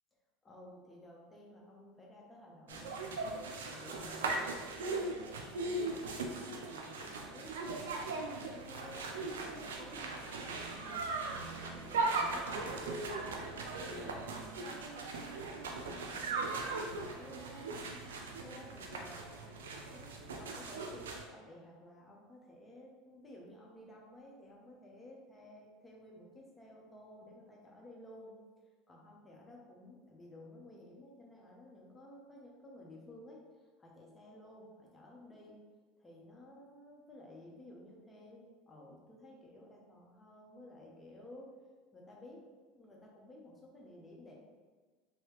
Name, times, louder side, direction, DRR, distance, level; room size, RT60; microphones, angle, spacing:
voice 1, 0.4-3.3 3.7-11.1 11.7-13.4 13.8-16.4 16.8-17.7 18.4-19.3 19.9-28.3 28.9-33.4 33.8-35.6 36.0-41.5 41.9-44.3, left 1 dB, 15° left, -2 dB, 0.9 m, -54 dB
sound 1, 2.7-21.2, right 3 dB, 85° right, 0.4 m, -39 dB
3.1 x 2.8 x 3.1 m, 1.4 s
hypercardioid pair, 90°, 0 cm